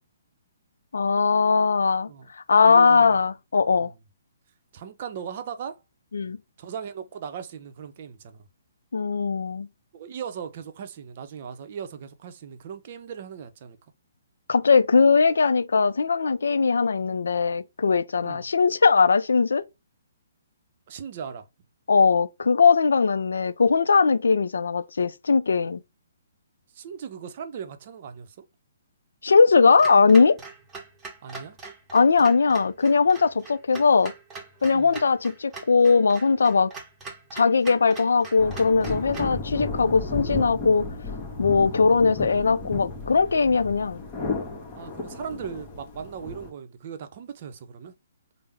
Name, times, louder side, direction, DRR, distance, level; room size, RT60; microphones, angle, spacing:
voice 1, 0.9-2.1 2.5-3.9 6.1-6.4 8.9-9.7 14.5-19.6 21.9-25.8 29.2-30.4 31.9-34.1 34.6-36.7 37.3-40.9 41.4-44.0, left 5 dB, 80° left, 0.3 m, -20 dB
voice 2, 2.6-3.2 3.8-3.9 4.7-5.8 6.6-8.4 9.9-13.8 18.2-18.4 20.9-21.5 26.7-28.5 31.2-31.6 34.7-35.0 44.7-47.9, right 7 dB, 45° right, 0.5 m, -38 dB
Clock, 29.8-39.4, right 4 dB, 15° right, 0.9 m, -42 dB
sound 1, 38.4-46.5, left 3 dB, 30° left, 1.0 m, -33 dB
3.4 x 2.0 x 3.3 m
hypercardioid pair, 140°, 0 cm